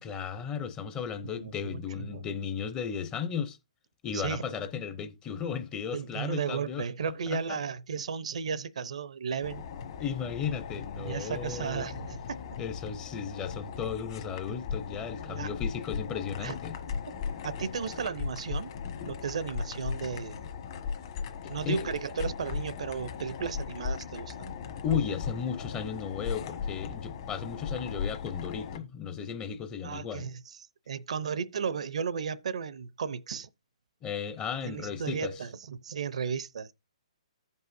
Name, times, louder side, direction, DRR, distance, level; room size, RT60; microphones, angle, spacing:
voice 1, 0.0-3.6 4.0-6.8 7.3-7.6 10.0-11.9 12.6-16.7 21.4-21.9 24.8-30.3 34.0-35.4, left 7 dB, 20° left, 0.6 m, -35 dB
voice 2, 1.3-2.2 4.1-4.5 5.9-9.6 11.0-12.2 15.2-15.5 16.4-16.6 17.4-18.7 19.0-20.4 21.5-24.5 29.8-30.6 30.9-33.5 34.6-36.7, right 6 dB, 70° right, 0.6 m, -34 dB
sound 1, 9.4-28.8, left 6 dB, 45° left, 1.3 m, -38 dB
15.0 x 5.4 x 2.6 m
hypercardioid pair, 145°, 4 cm